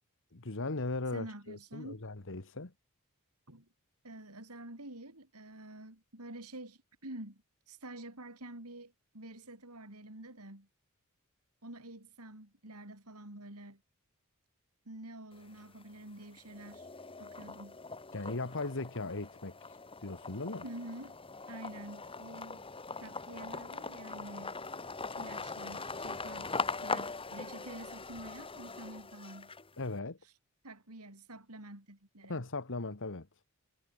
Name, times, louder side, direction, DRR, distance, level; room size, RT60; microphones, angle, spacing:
voice 1, 0.3-2.7 18.1-19.6 20.0-20.6 29.8-30.2 32.3-33.3, left 2 dB, 60° left, 1.8 m, -38 dB
voice 2, 1.1-2.1 3.5-3.7 4.0-10.7 11.6-13.8 14.9-16.9 17.2-17.8 20.6-21.2 21.5-22.6 23.0-24.6 25.2-29.5 30.2-30.3 30.6-32.4, right 1 dB, 80° right, 5.9 m, -48 dB
sound 1, 15.3-16.0 16.4-29.9, left 4 dB, 25° left, 2.9 m, -41 dB
head